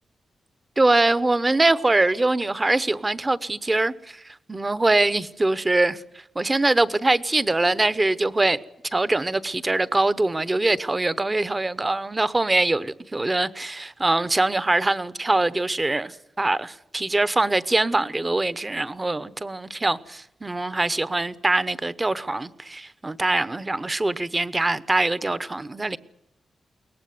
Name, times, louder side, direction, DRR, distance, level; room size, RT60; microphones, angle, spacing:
voice 1, 0.8-4.2 4.5-6.0 6.3-8.6 8.9-26.0, right 2 dB, 20° right, 0.9 m, -23 dB
22.5 x 18.5 x 9.5 m
wide cardioid pair, 125°, 0 cm